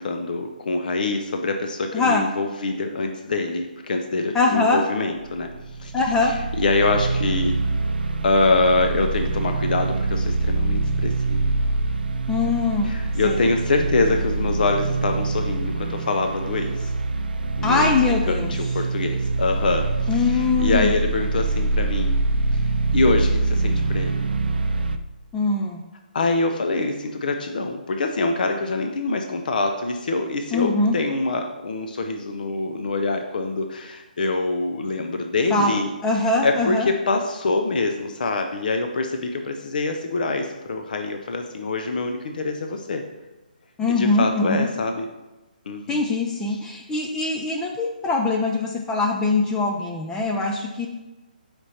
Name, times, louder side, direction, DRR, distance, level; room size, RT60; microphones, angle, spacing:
voice 1, 0.0-5.5 5.8-5.9 6.3-7.6 8.2-11.4 12.8-16.9 17.6-17.9 18.3-22.2 22.5-22.6 22.9-24.3 26.1-35.9 36.4-43.0 44.0-45.1 45.7-46.0, left 3 dB, 65° left, 5 dB, 0.5 m, -25 dB
voice 2, 1.9-2.2 4.3-4.8 5.9-6.3 12.3-12.9 13.2-13.4 17.6-18.6 20.1-20.9 25.3-25.8 30.5-31.0 35.5-36.9 43.8-44.7 45.9-50.9, left 3 dB, 10° left, 1 dB, 0.3 m, -22 dB
sound 1, 5.1-25.0, right 3 dB, 80° right, 0.4 m, -24 dB
5.1 x 4.4 x 4.2 m, 1.0 s
hypercardioid pair, 155°, 5 cm